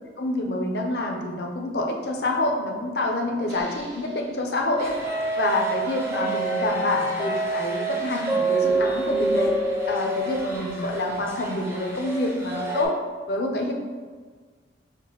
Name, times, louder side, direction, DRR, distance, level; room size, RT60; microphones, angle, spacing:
voice 1, 0.2-4.9 5.3-9.5 9.9-12.9 13.3-13.7, left 1 dB, 60° left, 1 dB, 0.6 m, -27 dB
sound 1, 3.5-4.8 8.5-11.2, right 1 dB, 80° right, 0.8 m, -33 dB
sound 2, 4.8-12.8, right 2 dB, 15° right, 0.5 m, -27 dB
5.8 x 2.1 x 3.0 m, 1.5 s
head